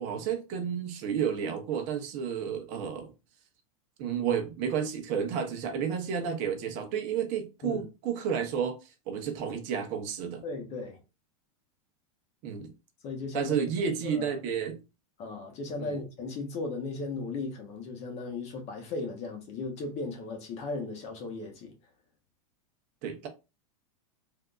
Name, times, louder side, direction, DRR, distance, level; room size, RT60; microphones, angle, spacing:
voice 1, 0.0-3.1 4.0-10.4 12.4-12.7 13.3-14.8 15.8-16.0 23.0-23.3, right 7 dB, 45° right, 0.8 m, -31 dB
voice 2, 10.4-11.0 13.0-14.4 15.2-21.7, left 3 dB, 35° left, 1.0 m, -36 dB
3.4 x 2.7 x 2.4 m
supercardioid pair, 130°, 18 cm